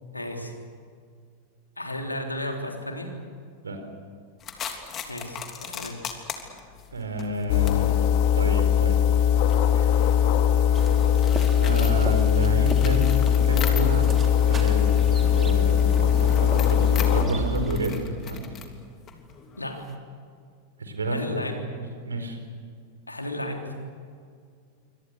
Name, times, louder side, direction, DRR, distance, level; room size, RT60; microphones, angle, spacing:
voice 1, 0.1-0.5 1.8-3.1 5.1-6.0 19.6-19.9 21.1-21.7 23.1-23.8, left 1 dB, 85° left, 2 dB, 3.6 m, -33 dB
sound 1, 4.4-14.2 14.5-19.9, left 7 dB, 30° left, 3.0 m, -39 dB
voice 2, 6.9-8.1 8.3-9.0 9.2-9.4 9.7-10.0 11.6-13.2 13.4-14.1 14.5-17.9 18.3-18.4 20.8-21.4 21.7-22.4, right 1 dB, 75° right, 5 dB, 4.5 m, -30 dB
sound 2, 7.5-17.2, left 9 dB, 45° left, 2.3 m, -20 dB
sound 3, 10.7-17.9, right 3 dB, 20° right, 3.5 m, -36 dB
27.5 x 25.0 x 6.6 m, 2.1 s
figure-of-eight pair, 90°, 0 cm